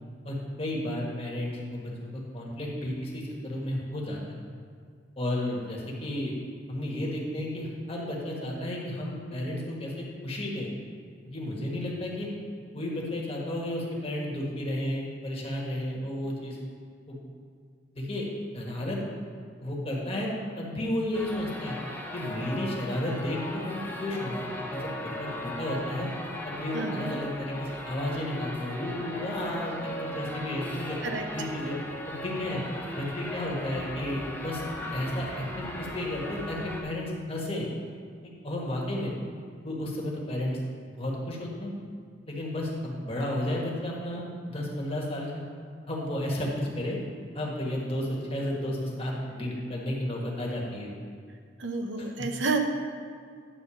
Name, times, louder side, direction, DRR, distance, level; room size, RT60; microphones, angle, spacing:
voice 1, 0.2-4.4 5.2-6.3 6.7-10.7 11.2-12.3 12.7-16.6 17.1-17.2 17.9-18.3 18.5-19.0 19.6-20.3 20.6-21.8 22.1-24.4 24.7-26.1 26.4-31.0 31.3-31.8 32.1-32.6 32.9-34.6 34.9-37.7 38.4-39.1 39.6-40.6 41.0-41.7 42.3-45.4 45.9-47.0 47.3-50.9, left 1 dB, 30° left, -2 dB, 1.6 m, -32 dB
sound 1, 21.1-36.8, left 1 dB, 10° left, 0.9 m, -38 dB
voice 2, 26.7-27.1 31.0-31.2 51.6-52.6, right 3 dB, 90° right, 4 dB, 0.9 m, -30 dB
10.0 x 4.1 x 7.0 m, 2.1 s
head